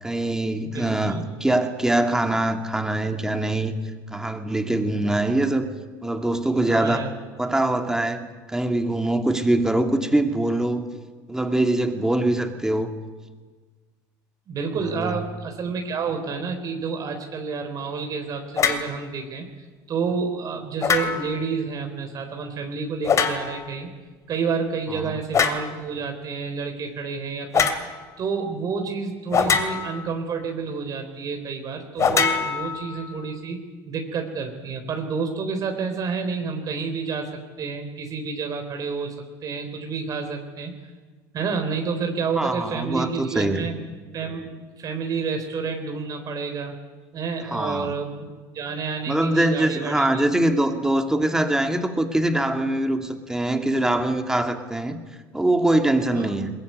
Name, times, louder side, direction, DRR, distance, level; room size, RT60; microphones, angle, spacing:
voice 1, 0.0-3.8 4.1-5.7 6.0-7.0 7.4-10.8 11.3-12.9 14.8-15.2 24.9-25.2 42.3-43.7 47.5-47.9 49.1-55.0 55.3-56.5, right 1 dB, 5° right, 5 dB, 2.5 m, -23 dB
voice 2, 0.7-1.3 6.7-7.1 14.5-23.9 24.3-27.7 28.2-37.3 37.6-39.1 39.4-40.7 41.3-43.9 44.1-46.7 47.1-50.2 56.2-56.3, right 5 dB, 40° right, 5 dB, 3.9 m, -29 dB
sound 1, 18.6-18.9 20.8-21.4 23.0-23.7 25.3-25.7 27.5-27.8 29.3-30.1 32.0-33.1, left 6 dB, 35° left, 2.7 m, -23 dB
22.0 x 21.0 x 9.5 m, 1.4 s
supercardioid pair, 115°, 9 cm